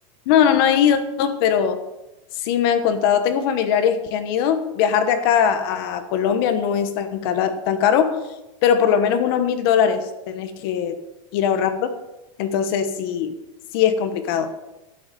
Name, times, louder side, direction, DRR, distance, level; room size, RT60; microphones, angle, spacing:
voice 1, 0.3-1.8 2.4-8.2 8.6-11.0 11.3-11.9 12.4-13.3 13.7-14.5, left 8 dB, 45° left, 9 dB, 1.1 m, -20 dB
12.0 x 10.5 x 5.3 m, 0.96 s
supercardioid pair, 175°, 18 cm